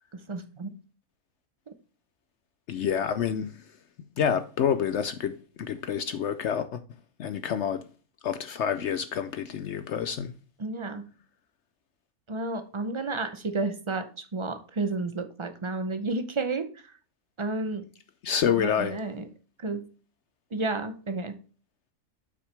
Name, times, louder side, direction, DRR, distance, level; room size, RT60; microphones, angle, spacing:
voice 1, 0.3-0.7 10.6-11.1 12.3-16.7 17.4-17.9 18.5-19.3 19.6-19.9 20.5-21.4, right 3 dB, 35° right, 0.5 m, -31 dB
voice 2, 2.7-3.5 4.2-6.8 7.2-7.8 8.2-10.3 18.2-19.0, left 8 dB, 65° left, 0.7 m, -28 dB
7.9 x 5.9 x 3.3 m
omnidirectional pair, 1.5 m